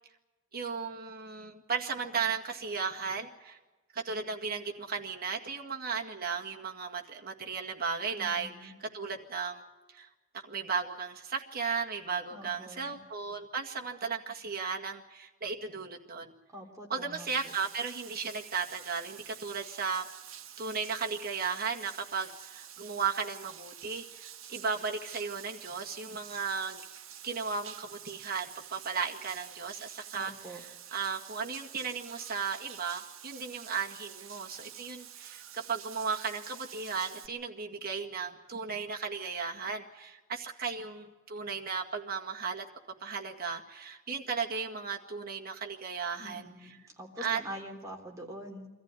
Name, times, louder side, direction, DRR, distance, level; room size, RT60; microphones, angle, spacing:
voice 1, 0.5-3.6 3.9-9.6 9.9-10.1 10.4-16.3 16.9-20.1 20.6-26.8 27.2-30.7 30.9-42.7 43.0-46.5 47.2-47.4, right 5 dB, 45° right, 1 dB, 2.0 m, -35 dB
voice 2, 8.1-8.7 12.3-13.0 16.5-17.5 30.1-30.6 46.2-48.7, equal, 15° right, 0 dB, 3.5 m, -45 dB
Bathtub (filling or washing), 17.3-37.3, right 10 dB, 75° right, 1.3 m, -49 dB
24.0 x 14.5 x 9.8 m, 1.2 s
head